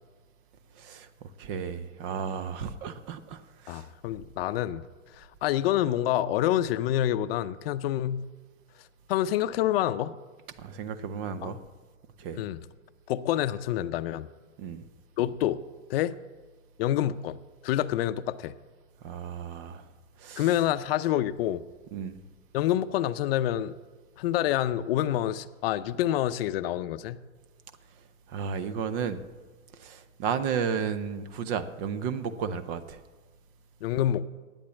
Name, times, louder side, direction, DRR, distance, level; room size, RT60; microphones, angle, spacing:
voice 1, 0.8-3.9 10.6-11.6 12.2-12.4 14.6-14.8 19.0-19.9 20.2-20.5 21.9-22.2 28.3-29.2 29.7-33.0, right 6 dB, 45° right, 13 dB, 1.0 m, -33 dB
voice 2, 3.7-4.8 5.1-8.3 9.1-10.1 11.4-11.5 12.4-12.6 13.1-14.3 15.2-15.6 15.9-16.2 16.8-18.5 20.4-21.6 22.5-23.7 24.2-27.2 33.8-34.3, left 12 dB, 50° left, 13 dB, 0.6 m, -27 dB
11.5 x 8.8 x 7.4 m, 1.3 s
hypercardioid pair, 110°, 37 cm